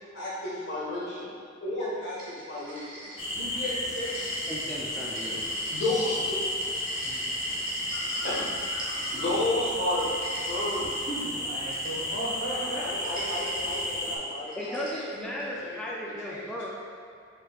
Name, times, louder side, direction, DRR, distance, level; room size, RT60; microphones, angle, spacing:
voice 1, 0.1-1.3 1.6-3.0 3.3-4.2 5.7-6.2 7.0-7.1 8.2-8.4 9.1-10.9 12.8-16.5, left 1 dB, 60° left, -7 dB, 1.5 m, -32 dB
sound 1, 2.2-3.5 3.8-9.4 9.8-11.0 11.6-12.3 12.9-13.8 14.5-15.5, right 1 dB, 45° right, 1.1 m, -42 dB
sound 2, 3.2-14.2, left 1 dB, 30° left, 0.7 m, -32 dB
voice 2, 4.5-5.4 14.6-16.7, equal, 5° left, -6 dB, 0.4 m, -35 dB
voice 3, 11.1-13.6, right 1 dB, 85° left, -7 dB, 1.4 m, -36 dB
4.6 x 4.5 x 2.4 m, 2.3 s
head